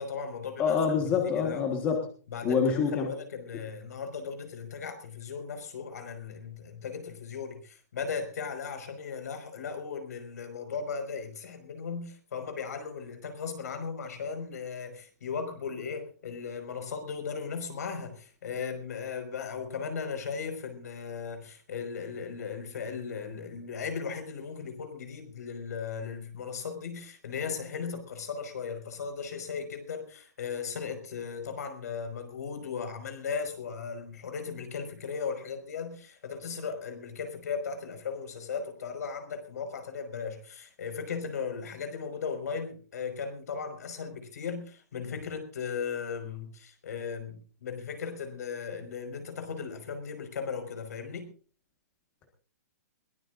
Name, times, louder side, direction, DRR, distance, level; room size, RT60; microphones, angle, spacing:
voice 1, 0.0-0.8 1.3-1.6 2.3-51.3, left 6 dB, 65° left, 7 dB, 5.3 m, -37 dB
voice 2, 0.6-2.1 2.4-3.1, left 6 dB, 15° left, 3 dB, 1.5 m, -26 dB
22.0 x 19.0 x 2.6 m, 0.39 s
hypercardioid pair, 180°, 10 cm